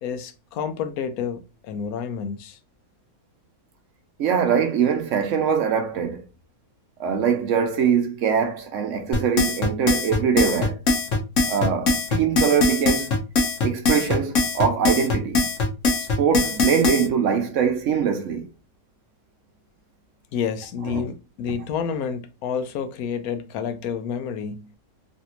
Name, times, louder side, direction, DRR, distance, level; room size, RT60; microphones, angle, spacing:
voice 1, 0.0-2.6 20.3-24.7, left 7 dB, 80° left, 1.0 m, -29 dB
voice 2, 4.2-6.2 7.0-10.8 11.5-13.1 13.6-15.4 16.2-18.5 20.9-21.0, right 7 dB, 70° right, 0.8 m, -22 dB
sound 1, 9.1-17.1, left 3 dB, 60° left, 1.2 m, -21 dB
3.3 x 2.6 x 2.8 m
omnidirectional pair, 1.6 m